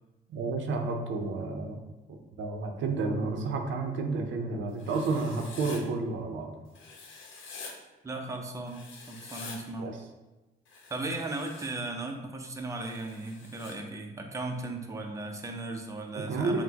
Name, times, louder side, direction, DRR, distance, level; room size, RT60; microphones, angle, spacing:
voice 1, 0.3-1.8 2.1-6.5 9.8-10.0 16.3-16.6, right 3 dB, 75° right, 4 dB, 0.6 m, -31 dB
Writing, 4.8-5.8 6.7-7.7 8.7-9.6 10.7-11.7 12.7-13.7, left 4 dB, 80° left, 0.8 m, -46 dB
voice 2, 8.0-8.8 9.1-9.9 10.9-16.6, right 2 dB, 15° right, 2 dB, 0.5 m, -36 dB
6.0 x 2.1 x 2.8 m, 1.1 s
cardioid pair, 90°, 20 cm